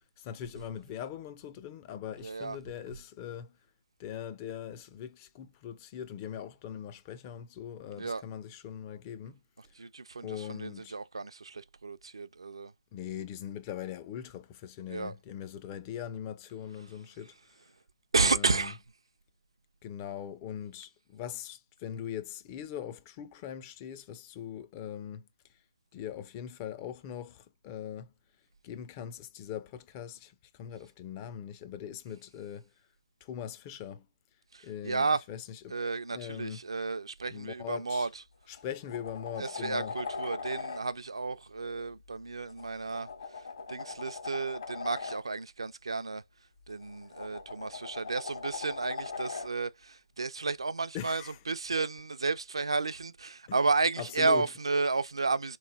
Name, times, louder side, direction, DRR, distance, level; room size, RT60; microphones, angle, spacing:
voice 1, 0.2-3.6 4.0-9.4 10.2-10.9 12.9-17.3 18.1-18.7 19.8-25.3 25.9-28.1 28.6-32.7 33.2-34.1 34.6-35.8 36.1-36.6 37.3-38.1 38.5-39.9 50.9-51.4 53.5-53.6 54.0-54.5, left 9 dB, 25° left, 0.4 m, -41 dB
voice 2, 2.2-2.6 8.0-8.2 9.8-12.7 14.9-15.1 18.1-18.8 34.5-35.2 35.7-38.1 39.4-43.1 43.7-46.2 46.7-55.6, right 4 dB, 80° right, 0.4 m, -32 dB
sound 1, 38.1-38.2 38.5-40.8 42.5-45.2 46.7-49.5 51.8-51.9, left 5 dB, 60° left, 1.4 m, -40 dB
3.7 x 3.0 x 2.2 m
figure-of-eight pair, 145°, 3 cm